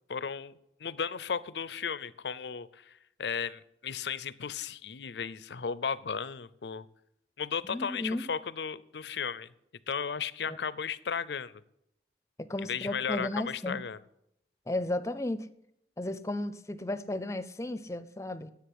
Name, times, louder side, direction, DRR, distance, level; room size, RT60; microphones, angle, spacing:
voice 1, 0.1-0.5 0.8-6.9 7.4-9.5 9.9-11.5 12.7-14.0, left 6 dB, 80° left, 18 dB, 0.6 m, -35 dB
voice 2, 7.6-8.3 10.5-10.6 12.5-13.8 14.7-15.5 16.0-18.5, left 1 dB, 15° left, 13 dB, 0.6 m, -34 dB
10.0 x 8.0 x 7.9 m, 0.79 s
head